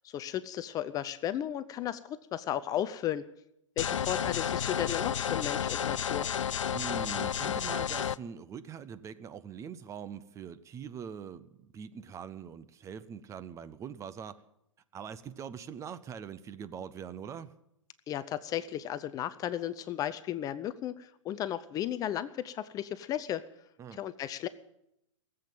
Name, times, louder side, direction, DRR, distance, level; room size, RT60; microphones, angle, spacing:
voice 1, 0.0-3.3 3.8-6.3 18.1-23.4 23.9-24.5, left 11 dB, 20° left, 14 dB, 0.5 m, -34 dB
sound 1, 3.8-8.2, left 8 dB, 75° left, 0.5 m, -31 dB
voice 2, 6.7-14.4 14.9-17.5 23.8-24.0, right 7 dB, 20° right, 13 dB, 0.7 m, -43 dB
19.0 x 7.8 x 9.2 m, 0.81 s
figure-of-eight pair, 115°, 16 cm